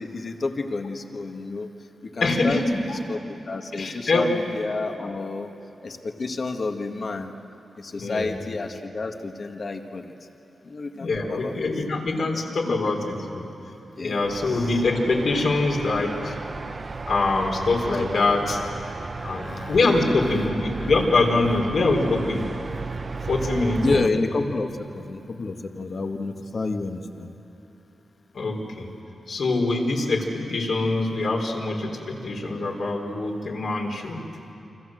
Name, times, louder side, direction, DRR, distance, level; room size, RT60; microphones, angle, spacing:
voice 1, 0.0-1.7 2.0-3.2 3.5-5.5 5.8-7.3 7.8-10.1 10.6-11.6 12.7-12.9 14.0-14.8 18.9-20.5 20.8-20.9 22.7-23.0 23.8-27.3, left 3 dB, 50° left, 4 dB, 1.9 m, -30 dB
voice 2, 2.2-2.8 3.7-4.3 8.0-8.3 10.9-13.4 14.0-16.3 17.1-18.6 19.2-22.5 23.3-24.1 28.3-28.9 29.3-34.2, left 3 dB, 70° left, 0 dB, 4.5 m, -24 dB
sound 1, 14.2-24.1, right 4 dB, 40° right, 0.8 m, -34 dB
29.5 x 25.0 x 7.9 m, 2.9 s
wide cardioid pair, 95°, 0 cm